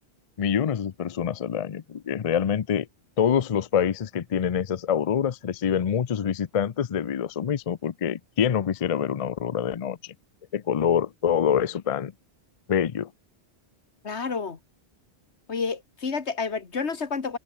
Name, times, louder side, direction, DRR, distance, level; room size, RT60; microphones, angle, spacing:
voice 1, 0.4-2.9 3.2-10.1 10.5-12.1 12.7-13.1, left 8 dB, 45° left, 0.5 m, -25 dB
voice 2, 14.0-14.6 15.5-17.4, left 5 dB, 85° left, 2.0 m, -29 dB
omnidirectional pair, 1.1 m